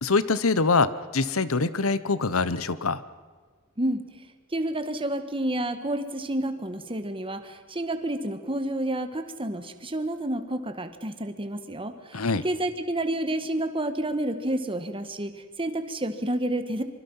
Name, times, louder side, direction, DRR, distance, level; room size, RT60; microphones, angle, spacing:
voice 1, 0.0-3.0 12.1-12.4, left 3 dB, 80° left, 15 dB, 1.1 m, -24 dB
voice 2, 3.8-4.1 4.5-16.8, right 1 dB, 25° right, 8 dB, 1.7 m, -30 dB
25.0 x 24.5 x 5.7 m, 1.5 s
head